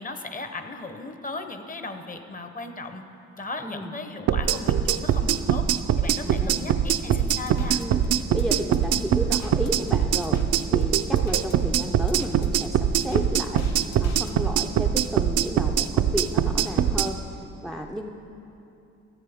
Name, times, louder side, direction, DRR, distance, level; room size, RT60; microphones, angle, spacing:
voice 1, 0.0-3.0 3.4-5.7 6.0-7.8, left 3 dB, 30° left, 7 dB, 0.7 m, -36 dB
voice 2, 3.6-3.9 6.2-6.7 7.8-8.0 8.3-10.4 10.7-13.7 14.0-17.2 17.6-18.1, right 1 dB, ahead, 2 dB, 0.4 m, -32 dB
sound 1, 4.3-17.1, right 9 dB, 55° right, 0.5 m, -22 dB
sound 2, 7.5-14.3, left 4 dB, 65° left, 0.8 m, -40 dB
14.5 x 7.5 x 3.5 m, 2.8 s
cardioid pair, 90°, 30 cm